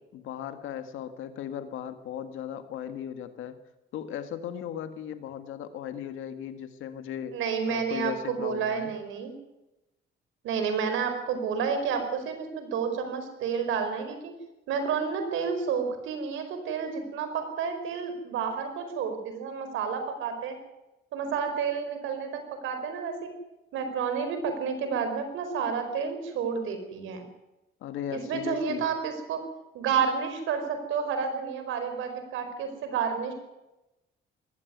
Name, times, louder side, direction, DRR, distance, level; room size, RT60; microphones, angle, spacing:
voice 1, 0.1-3.6 3.9-7.4 7.7-8.9 27.8-28.9, left 9 dB, 85° left, 9 dB, 1.8 m, -37 dB
voice 2, 7.3-9.3 10.4-14.3 14.7-20.5 21.1-23.3 23.7-27.2 28.1-29.4 29.7-33.3, right 6 dB, 85° right, 7 dB, 4.7 m, -30 dB
19.5 x 15.5 x 9.4 m, 0.99 s
cardioid pair, 90°, 20 cm